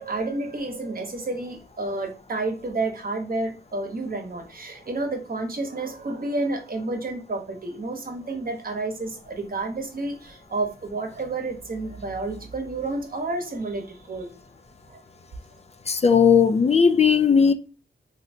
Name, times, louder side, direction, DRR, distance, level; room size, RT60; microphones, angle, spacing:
voice 1, 0.0-14.3 14.9-15.0, right 2 dB, 55° right, 0.9 m, -30 dB
voice 2, 15.9-17.5, left 6 dB, 35° left, 0.3 m, -17 dB
3.2 x 2.7 x 2.6 m
cardioid pair, 60°, 18 cm